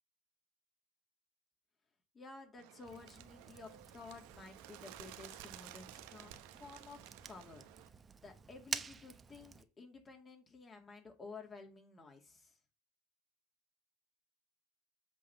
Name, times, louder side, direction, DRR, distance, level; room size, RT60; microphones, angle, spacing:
voice 1, 2.1-7.6 8.2-12.6, left 4 dB, 25° left, 3 dB, 2.3 m, -53 dB
Bird, 2.6-7.9, right 13 dB, 75° right, 0.9 m, -54 dB
Fire, 2.8-9.6, right 5 dB, 25° right, 0.7 m, -49 dB
8.3 x 4.0 x 6.9 m, 0.28 s
supercardioid pair, 120°, 0 cm